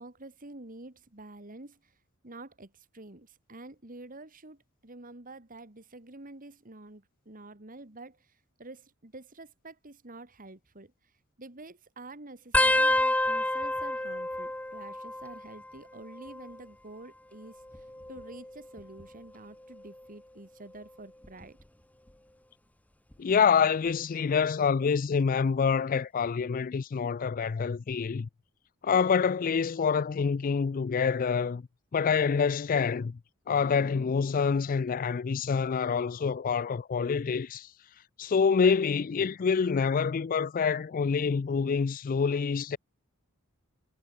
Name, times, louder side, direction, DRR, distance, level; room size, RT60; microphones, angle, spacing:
voice 1, 0.0-1.9 2.2-10.9 11.4-21.6, right 2 dB, 40° right, 2.4 m, -48 dB
sound 1, 12.5-15.7 16.0-16.6 17.6-19.1 19.7-20.0 21.2-21.6 23.1-23.2, left 1 dB, 5° left, 1.1 m, -29 dB
voice 2, 23.2-28.3 28.8-31.6 31.9-33.2 33.5-37.7 38.2-42.8, left 6 dB, 40° left, 0.4 m, -26 dB
head